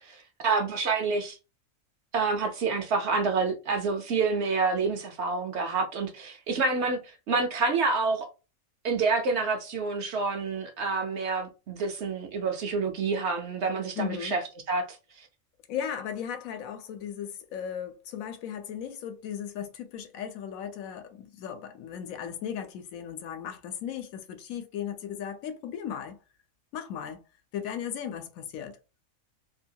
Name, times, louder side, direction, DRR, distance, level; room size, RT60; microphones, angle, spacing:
voice 1, 0.1-1.4 2.1-7.0 7.3-8.3 8.8-14.4 14.7-14.9, right 4 dB, 65° right, 0.8 m, -28 dB
voice 2, 14.0-14.4 15.7-26.2 26.7-27.2 27.5-28.8, left 8 dB, 80° left, 1.0 m, -36 dB
2.7 x 2.2 x 2.7 m
omnidirectional pair, 1.4 m